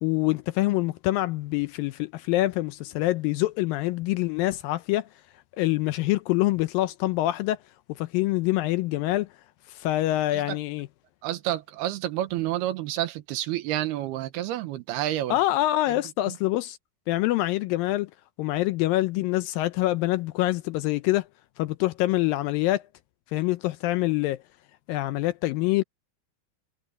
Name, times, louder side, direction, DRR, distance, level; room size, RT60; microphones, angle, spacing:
voice 1, 0.0-5.1 5.6-7.6 7.9-9.3 9.7-10.9 15.3-16.8 17.1-18.1 18.4-21.3 21.6-22.8 23.3-24.4 24.9-25.8, left 17 dB, 80° left, 2.1 m, -25 dB
voice 2, 11.2-15.4 15.9-16.0 16.3-16.4, right 13 dB, 90° right, 3.1 m, -29 dB
omnidirectional pair, 4.5 m